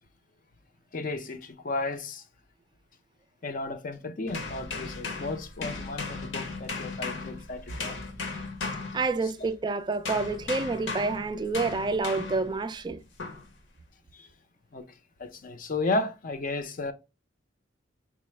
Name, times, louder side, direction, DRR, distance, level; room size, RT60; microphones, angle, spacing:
voice 1, 0.9-2.3 3.4-8.0 14.1-14.3 14.7-16.9, left 2 dB, 45° left, 0.5 m, -33 dB
sound 1, 4.3-9.6 10.0-12.6 13.2-13.5, left 3 dB, 75° left, 0.8 m, -36 dB
voice 2, 8.9-13.0, right 3 dB, 25° right, 0.3 m, -28 dB
4.6 x 2.1 x 3.1 m
head